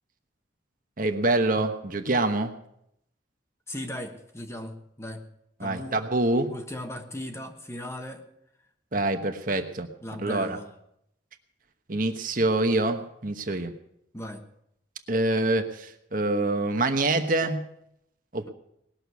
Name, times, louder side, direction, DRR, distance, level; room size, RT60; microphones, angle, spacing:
voice 1, 1.0-2.5 5.6-6.5 8.9-9.9 10.2-10.6 11.9-13.7 15.1-17.6 18.3-18.5, right 2 dB, 45° right, 6 dB, 1.1 m, -25 dB
voice 2, 3.7-5.2 5.6-6.0 6.5-8.2 10.0-10.7 14.1-14.4, left 1 dB, 15° left, 5 dB, 1.3 m, -37 dB
19.5 x 6.7 x 9.4 m, 0.76 s
head